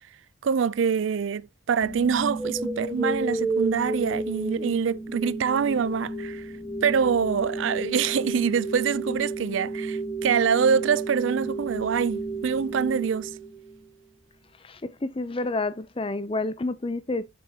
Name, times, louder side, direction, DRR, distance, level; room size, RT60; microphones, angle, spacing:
voice 1, 0.4-6.5 6.8-13.3, right 6 dB, 75° right, 0.4 m, -25 dB
sound 1, 1.8-13.9, right 2 dB, 10° right, 1.9 m, -32 dB
voice 2, 14.6-17.3, left 2 dB, 25° left, 0.6 m, -29 dB
7.8 x 6.9 x 2.8 m
head